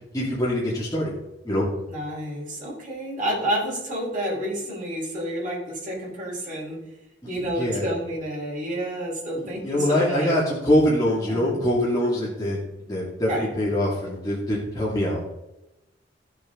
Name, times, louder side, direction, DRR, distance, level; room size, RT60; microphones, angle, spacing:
voice 1, 0.1-1.1 1.4-1.7 7.2-7.9 9.4-15.2, left 1 dB, 20° left, -7 dB, 2.4 m, -24 dB
voice 2, 1.9-6.8 7.3-10.3 11.3-11.6 13.2-13.5, equal, 45° right, -4 dB, 4.4 m, -29 dB
15.0 x 6.6 x 3.8 m, 0.94 s
head